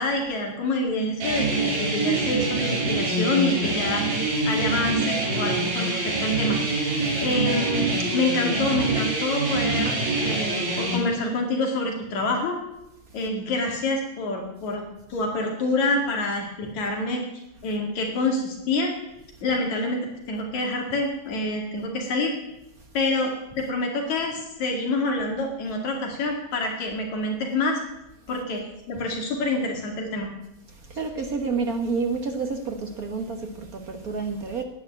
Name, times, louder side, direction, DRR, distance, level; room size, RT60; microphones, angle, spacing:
voice 1, 0.0-4.1 4.5-6.6 7.2-12.6 13.1-17.2 17.6-18.9 19.4-20.0 20.3-22.3 22.9-27.8 28.3-30.3, left 2 dB, 75° left, 3.6 m, -27 dB
sound 1, 1.2-11.0, right 2 dB, 70° right, 4.2 m, -25 dB
voice 2, 7.0-7.4 13.1-13.3 17.6-17.8 19.4-19.5 22.7-23.0 28.3-28.4 30.6-34.6, right 4 dB, 50° right, 1.0 m, -30 dB
11.0 x 9.4 x 8.7 m
omnidirectional pair, 3.3 m